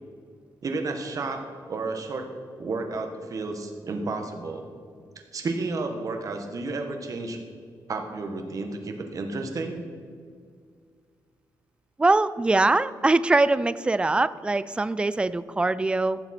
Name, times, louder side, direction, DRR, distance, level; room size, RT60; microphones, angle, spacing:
voice 1, 0.6-1.4 1.7-2.3 2.6-4.6 5.3-7.4 7.9-9.8, right 3 dB, 45° right, 5 dB, 1.3 m, -31 dB
voice 2, 12.0-16.2, right 2 dB, 15° right, 16 dB, 0.3 m, -22 dB
15.0 x 7.0 x 4.3 m, 2.1 s
wide cardioid pair, 140°, 8 cm